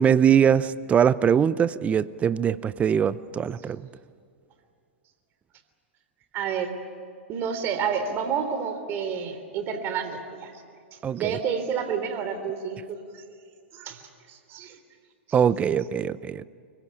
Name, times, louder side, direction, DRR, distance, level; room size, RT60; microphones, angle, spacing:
voice 1, 0.0-3.8 11.0-11.4 15.3-16.4, right 8 dB, 20° right, 18 dB, 0.6 m, -22 dB
voice 2, 6.3-6.7 7.3-10.5 11.1-13.2 13.7-14.0 14.3-14.8, right 7 dB, 35° right, 8 dB, 3.3 m, -29 dB
25.0 x 22.5 x 8.8 m, 2.2 s
hypercardioid pair, 115°, 7 cm